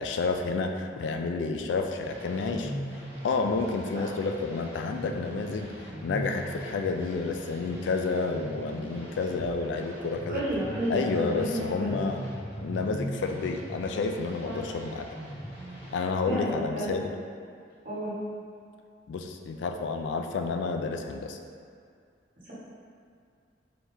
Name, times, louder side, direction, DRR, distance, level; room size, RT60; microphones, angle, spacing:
voice 1, 0.0-2.7 3.2-5.7 6.0-10.4 10.9-12.2 12.6-15.1 15.9-17.1 19.1-21.4, left 4 dB, 80° left, 5 dB, 0.3 m, -30 dB
sound 1, 2.0-16.0, equal, 15° right, 1.2 m, -40 dB
voice 2, 10.3-12.1 14.4-14.6 16.2-17.0 17.8-18.1 22.4-22.5, right 1 dB, 50° right, -10 dB, 1.4 m, -32 dB
4.5 x 3.5 x 2.7 m, 2.3 s
head